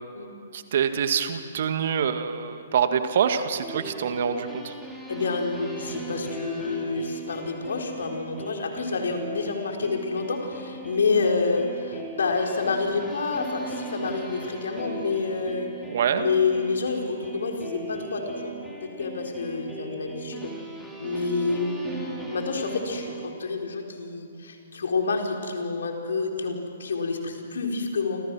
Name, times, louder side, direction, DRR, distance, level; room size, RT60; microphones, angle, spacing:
voice 1, 0.5-4.7 15.9-16.3, right 7 dB, 55° right, 8 dB, 1.9 m, -25 dB
sound 1, 3.6-23.3, right 3 dB, ahead, 5.0 m, -38 dB
voice 2, 5.1-15.7 16.1-18.6 18.8-20.5 21.0-28.2, left 4 dB, 70° left, 2 dB, 4.1 m, -28 dB
29.5 x 27.0 x 6.3 m, 2.4 s
figure-of-eight pair, 125°, 0 cm